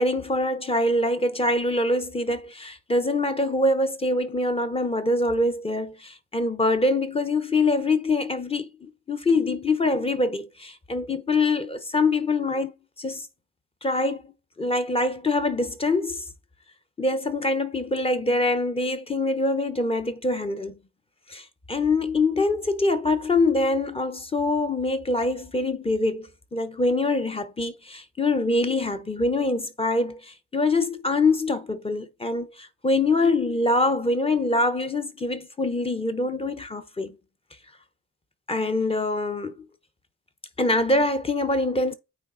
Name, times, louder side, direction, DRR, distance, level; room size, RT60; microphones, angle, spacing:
voice 1, 0.0-12.7 13.0-13.3 13.8-14.2 14.6-16.2 17.0-20.7 21.3-37.1 38.5-39.5 40.6-41.9, left 2 dB, 15° left, 0.8 m, -24 dB
9.0 x 3.3 x 3.9 m
cardioid pair, 135°, 34 cm